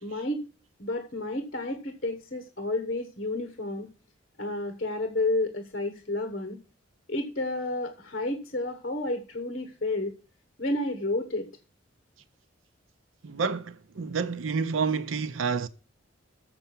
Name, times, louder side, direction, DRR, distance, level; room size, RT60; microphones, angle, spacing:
voice 1, 0.0-0.4 0.8-3.9 4.4-6.6 7.1-10.1 10.6-11.5, left 2 dB, 45° left, 1.3 m, -31 dB
voice 2, 13.2-15.7, right 5 dB, 85° right, 0.6 m, -29 dB
6.9 x 6.7 x 7.2 m
head